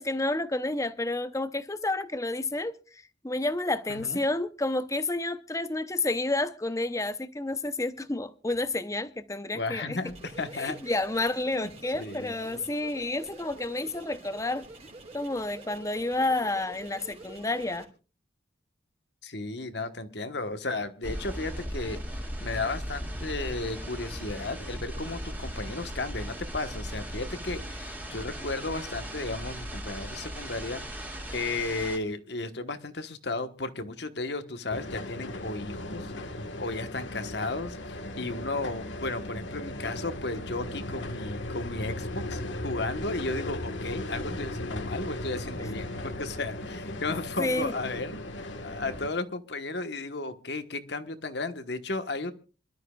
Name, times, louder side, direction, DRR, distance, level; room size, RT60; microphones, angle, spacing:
voice 1, 0.0-10.0 10.5-14.6 15.1-17.9 47.4-47.7, left 2 dB, 15° left, 0.7 m, -30 dB
voice 2, 3.9-4.2 9.5-10.8 11.5-12.3 19.2-31.1 31.3-48.1 48.6-52.3, left 3 dB, 60° left, 1.3 m, -34 dB
sound 1, 10.0-17.8, right 2 dB, 35° right, 3.4 m, -47 dB
sound 2, 21.0-32.0, equal, 10° right, 2.3 m, -37 dB
sound 3, 34.7-49.1, left 1 dB, 75° left, 1.5 m, -37 dB
26.5 x 12.5 x 2.4 m
head